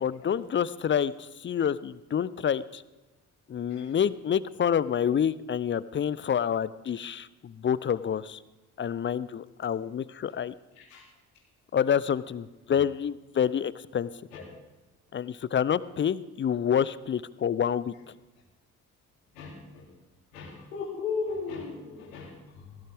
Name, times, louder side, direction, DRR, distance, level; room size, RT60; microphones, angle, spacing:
voice 1, 0.0-2.8 3.5-8.4 8.8-10.5 11.7-14.1 15.1-17.9, left 8 dB, 30° left, 18 dB, 0.5 m, -28 dB
voice 2, 19.3-19.9 20.3-22.7, left 5 dB, 80° left, -2 dB, 2.9 m, -36 dB
17.0 x 14.0 x 3.5 m, 1.1 s
figure-of-eight pair, 40°, 42 cm